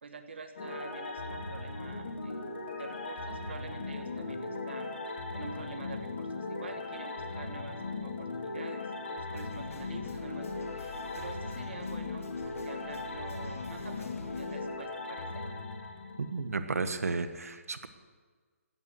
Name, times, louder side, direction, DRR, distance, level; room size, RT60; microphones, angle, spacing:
voice 1, 0.0-15.4, right 4 dB, 50° right, 6 dB, 1.5 m, -47 dB
sound 1, 0.6-16.6, left 3 dB, 45° left, 2.5 m, -38 dB
sound 2, 9.3-14.6, left 3 dB, 70° left, 2.2 m, -48 dB
voice 2, 16.2-17.9, right 4 dB, 80° right, 9 dB, 1.5 m, -33 dB
15.5 x 9.5 x 7.9 m, 1.5 s
hypercardioid pair, 175°, 8 cm